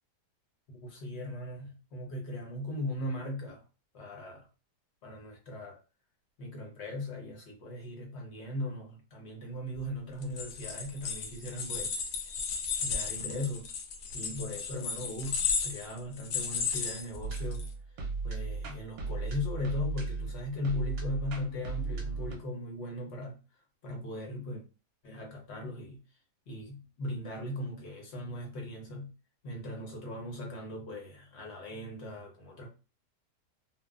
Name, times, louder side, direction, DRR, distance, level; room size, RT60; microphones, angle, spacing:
voice 1, 0.7-3.6 3.9-4.5 5.0-5.8 6.4-11.9 12.8-13.7 14.1-17.7 18.2-23.4 23.8-24.6 25.0-26.0 26.5-29.1 29.4-32.7, left 1 dB, 55° left, 0.8 m, -38 dB
sound 1, 10.2-17.7, left 6 dB, 85° left, 1.2 m, -34 dB
sound 2, 17.2-22.4, right 4 dB, 70° right, 1.0 m, -36 dB
2.9 x 2.1 x 2.3 m
omnidirectional pair, 1.8 m